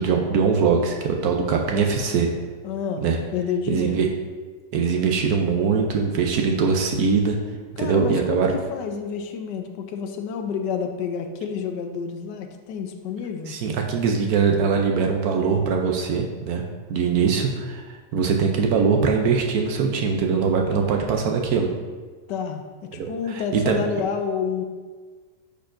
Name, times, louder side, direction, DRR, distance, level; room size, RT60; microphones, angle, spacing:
voice 1, 0.0-2.3 3.0-3.2 3.7-4.1 4.7-7.4 7.8-8.5 13.5-16.6 16.9-21.7 23.0-23.8, right 5 dB, 70° right, 2 dB, 1.0 m, -22 dB
voice 2, 2.6-4.1 7.8-13.5 22.3-24.6, left 6 dB, 80° left, 6 dB, 1.2 m, -29 dB
10.0 x 4.5 x 2.5 m, 1.4 s
omnidirectional pair, 1.9 m